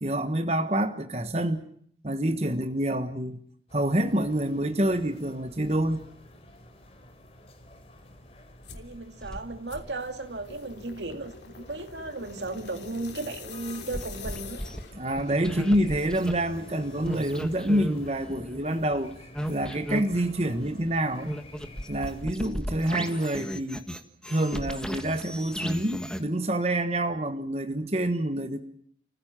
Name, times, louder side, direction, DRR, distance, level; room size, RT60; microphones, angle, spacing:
voice 1, 0.0-1.6 2.0-3.4 3.7-6.1 14.9-19.1 19.5-21.4 21.9-23.8 24.3-28.6, right 1 dB, 35° right, 1.3 m, -27 dB
sound 1, 3.7-22.2, left 1 dB, 35° left, 3.9 m, -48 dB
sound 2, 8.6-8.9 9.7-15.1, left 4 dB, 85° left, 3.2 m, -45 dB
voice 2, 8.7-14.6, right 2 dB, 85° right, 2.5 m, -35 dB
sound 3, 9.2-9.4 13.9-14.8 15.2-16.4 17.0-20.7 21.2-26.2, equal, 5° left, 1.6 m, -35 dB
30.0 x 15.5 x 7.5 m
head